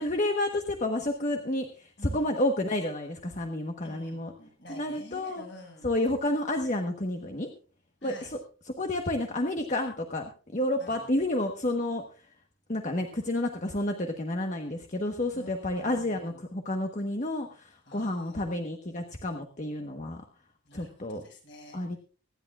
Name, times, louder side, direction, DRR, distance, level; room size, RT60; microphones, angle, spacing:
voice 1, 0.0-4.3 4.7-5.4 5.8-7.5 8.0-8.4 8.7-12.0 12.7-20.2 20.7-21.2 21.7-22.0, left 1 dB, 35° left, 4 dB, 1.2 m, -30 dB
voice 2, 2.0-2.4 3.8-5.9 8.0-8.3 10.8-11.1 15.3-16.4 17.8-18.5 20.6-21.8, left 1 dB, 60° left, 2 dB, 6.1 m, -49 dB
24.5 x 11.0 x 2.4 m, 0.38 s
head